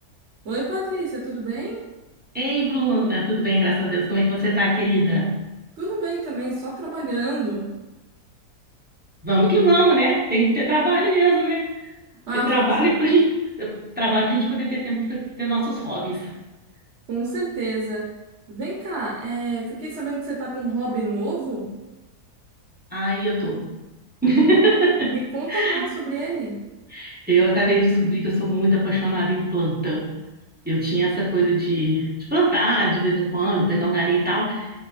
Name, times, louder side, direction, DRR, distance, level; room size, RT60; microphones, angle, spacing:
voice 1, 0.4-1.8 5.8-7.7 12.3-13.2 17.1-18.1 18.5-21.7 25.1-26.6, right 2 dB, 50° right, -4 dB, 1.0 m, -28 dB
voice 2, 2.3-5.3 9.2-11.7 12.3-13.3 13.6-16.3 22.9-23.6 24.2-25.2 25.5-25.8 26.9-30.1 30.6-34.7, right 2 dB, 5° right, -7 dB, 0.9 m, -21 dB
6.2 x 3.3 x 2.4 m, 1.1 s
omnidirectional pair, 1.7 m